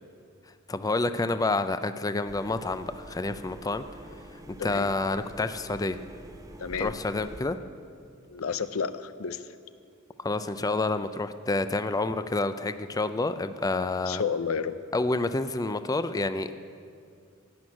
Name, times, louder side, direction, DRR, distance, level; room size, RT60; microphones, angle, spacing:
voice 1, 0.7-3.8 4.5-6.0 6.8-7.6 10.2-14.2 14.9-16.5, left 2 dB, 15° left, 11 dB, 0.4 m, -28 dB
sound 1, 2.3-7.4, right 1 dB, 15° right, 0.8 m, -46 dB
voice 2, 6.6-7.0 8.3-9.4 14.1-14.8, left 6 dB, 90° left, 13 dB, 0.6 m, -31 dB
17.0 x 6.2 x 9.8 m, 2.3 s
head